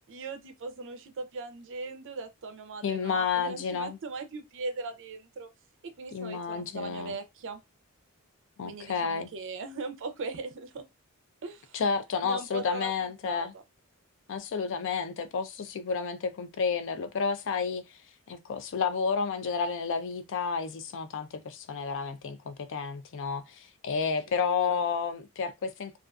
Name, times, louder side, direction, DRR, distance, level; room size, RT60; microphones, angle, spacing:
voice 1, 0.1-5.5 6.0-7.6 8.6-10.8 11.4-11.8 12.2-13.6 24.4-24.8, right 3 dB, 55° right, 0.5 m, -39 dB
voice 2, 2.8-4.0 6.1-7.2 8.6-9.3 11.7-13.5 14.3-18.0 18.3-26.0, left 5 dB, 60° left, 0.4 m, -31 dB
2.4 x 2.3 x 2.3 m
head